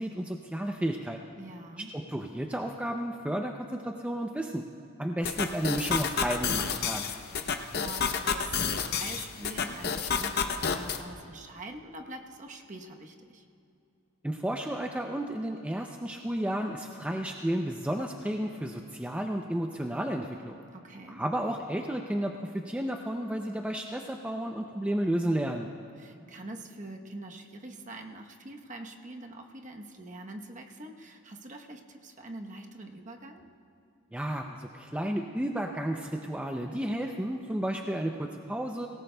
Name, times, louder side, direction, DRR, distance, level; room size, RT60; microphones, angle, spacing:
voice 1, 0.0-1.2 1.9-4.6 5.0-7.0 14.2-20.6 21.1-25.7 34.1-38.9, right 1 dB, 5° right, 2 dB, 0.4 m, -32 dB
voice 2, 1.4-1.9 7.4-13.4 20.7-21.2 26.0-33.5, right 2 dB, 35° right, 3 dB, 0.9 m, -44 dB
sound 1, 5.2-11.0, left 6 dB, 45° left, 0.6 m, -30 dB
23.5 x 18.0 x 2.2 m, 2.6 s
head